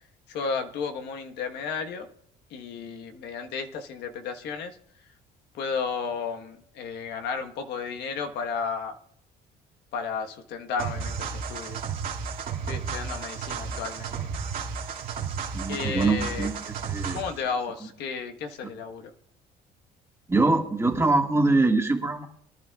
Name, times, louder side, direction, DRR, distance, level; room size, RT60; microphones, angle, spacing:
voice 1, 0.3-2.1 2.5-4.8 5.5-8.9 9.9-11.8 12.7-14.2 15.7-16.5 17.1-19.1, left 5 dB, 80° left, 5 dB, 1.3 m, -33 dB
sound 1, 10.8-17.4, right 6 dB, 55° right, 2.4 m, -33 dB
voice 2, 15.5-16.6 16.9-17.2 20.3-22.3, right 3 dB, 15° right, 2 dB, 1.8 m, -23 dB
24.5 x 11.0 x 2.4 m, 0.66 s
cardioid pair, 110°, 17 cm